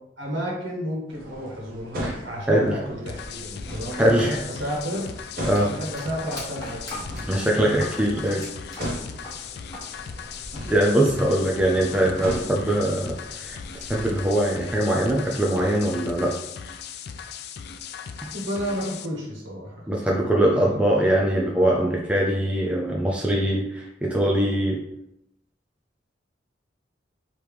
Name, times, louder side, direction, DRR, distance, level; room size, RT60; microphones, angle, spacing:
voice 1, 0.2-5.1 5.5-7.0 18.3-19.8 20.1-20.8, equal, 75° right, -3 dB, 1.4 m, -32 dB
sound 1, 1.1-14.5, equal, 55° right, 0.9 m, -38 dB
sound 2, 3.1-19.1, left 7 dB, 60° left, 0.3 m, -38 dB
voice 2, 3.9-4.4 5.4-5.7 7.3-8.4 10.7-16.3 19.9-24.8, right 1 dB, 5° right, -3 dB, 0.4 m, -22 dB
sound 3, 4.8-9.9 10.2-11.0, left 1 dB, 20° left, 1.3 m, -40 dB
3.4 x 3.1 x 4.8 m, 0.82 s
head